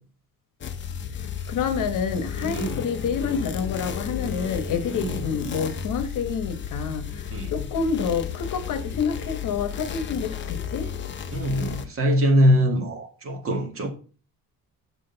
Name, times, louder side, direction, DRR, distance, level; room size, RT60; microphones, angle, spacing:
sound 1, 0.6-11.9, left 8 dB, 35° left, 0.7 m, -33 dB
voice 1, 1.5-10.9, left 6 dB, 60° left, 1.1 m, -28 dB
voice 2, 2.4-2.8 4.8-5.2 7.3-7.5 11.3-13.9, equal, 40° right, 1.7 m, -23 dB
7.6 x 6.3 x 3.9 m
cardioid pair, 170°, 35 cm